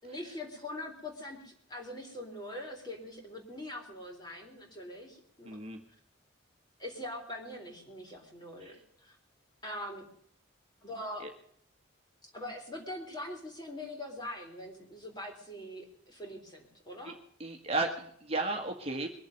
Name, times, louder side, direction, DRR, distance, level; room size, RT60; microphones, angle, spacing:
voice 1, 0.0-5.6 6.8-9.2 9.6-10.0 10.8-11.3 12.3-17.2, left 1 dB, 20° left, 2 dB, 3.7 m, -43 dB
voice 2, 5.4-5.8 8.6-8.8 11.2-11.3 17.0-17.1 17.4-19.1, right 2 dB, 30° right, 2 dB, 1.7 m, -34 dB
22.5 x 7.8 x 6.6 m, 0.67 s
head